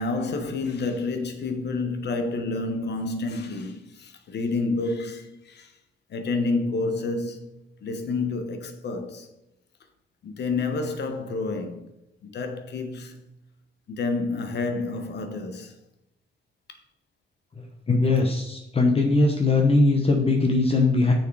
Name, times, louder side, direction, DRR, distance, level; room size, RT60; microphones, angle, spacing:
voice 1, 0.0-5.7 6.1-7.5 7.8-9.3 10.2-11.8 12.2-13.2 13.9-15.7, left 3 dB, 60° left, 1.1 m, -29 dB
voice 2, 17.6-21.1, left 3 dB, 30° left, 1.0 m, -21 dB
6.6 x 6.5 x 4.8 m
cardioid pair, 90°, 20 cm